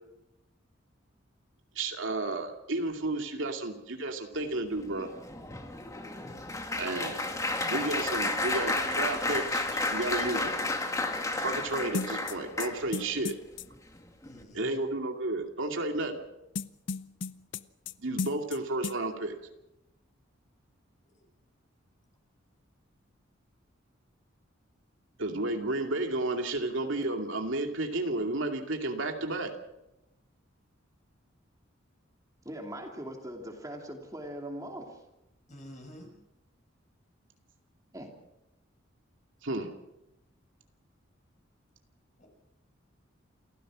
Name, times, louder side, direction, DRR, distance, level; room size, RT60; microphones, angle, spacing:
voice 1, 1.8-5.1 6.8-7.3 7.7-10.5 11.3-13.4 14.5-16.2 18.0-19.4 25.2-29.5 39.4-39.7, right 2 dB, 75° right, 4 dB, 2.5 m, -32 dB
Applause, 4.8-13.1 13.7-14.0 14.2-14.4, left 2 dB, 15° left, 1.9 m, -32 dB
sound 1, 11.9-13.7 16.6-17.9 18.2-18.6 18.8-19.0, left 4 dB, 65° left, 0.7 m, -34 dB
voice 2, 14.2-14.7 35.5-36.1 42.2-42.3, equal, 40° left, 1 dB, 6.4 m, -48 dB
voice 3, 32.4-35.0 37.9-38.1, right 1 dB, 15° right, 2 dB, 2.9 m, -40 dB
28.5 x 15.0 x 6.3 m, 0.92 s
head